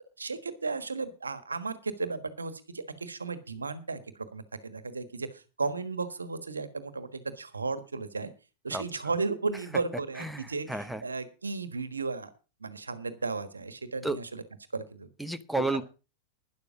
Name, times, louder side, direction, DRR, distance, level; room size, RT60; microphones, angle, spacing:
voice 1, 0.2-8.3 8.6-12.3 12.6-14.4 14.7-15.1 15.6-15.7, right 4 dB, 75° right, 13 dB, 1.4 m, -34 dB
voice 2, 10.2-11.0 14.0-14.2 15.2-15.8, right 2 dB, ahead, 10 dB, 1.0 m, -32 dB
12.0 x 10.5 x 4.9 m, 0.33 s
figure-of-eight pair, 90°, 0 cm